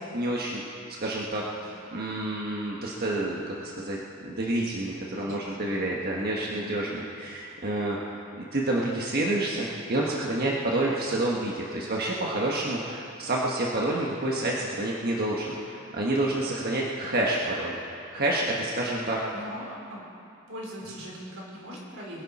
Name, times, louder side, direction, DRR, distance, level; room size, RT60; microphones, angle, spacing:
voice 1, 0.1-0.6 1.0-1.4 1.9-8.0 8.4-17.8 18.1-19.2, right 1 dB, 50° right, -3 dB, 1.4 m, -28 dB
voice 2, 1.3-1.6 5.1-5.7 6.2-6.7 19.3-20.1 20.5-22.2, equal, 90° right, -3 dB, 4.1 m, -41 dB
23.5 x 11.0 x 4.3 m, 2.5 s
head